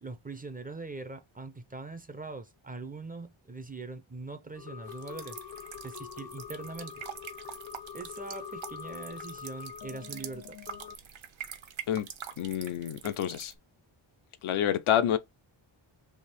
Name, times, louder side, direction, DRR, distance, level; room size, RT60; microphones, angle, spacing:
voice 1, 0.0-5.4 5.8-7.0 7.9-10.6, right 3 dB, 20° right, 0.4 m, -42 dB
sound 1, 4.5-11.0, left 8 dB, 50° left, 0.5 m, -44 dB
sound 2, 4.9-13.6, right 8 dB, 70° right, 0.8 m, -45 dB
voice 2, 12.4-13.5 14.4-15.2, left 10 dB, 90° left, 0.7 m, -28 dB
3.5 x 2.7 x 4.1 m
wide cardioid pair, 140°, 48 cm